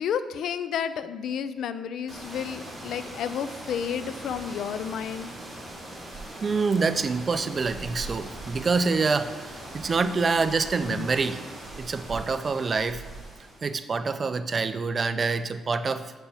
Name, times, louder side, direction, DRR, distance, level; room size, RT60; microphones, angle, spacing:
voice 1, 0.0-5.3 10.9-11.1, left 8 dB, 70° left, 12 dB, 0.3 m, -31 dB
sound 1, 2.1-13.8, right 1 dB, 15° right, 1.8 m, -41 dB
voice 2, 6.4-11.4 11.8-13.0 13.6-16.1, right 4 dB, 35° right, 11 dB, 0.3 m, -26 dB
7.0 x 4.4 x 3.4 m, 1.2 s
cardioid pair, 120°, 0 cm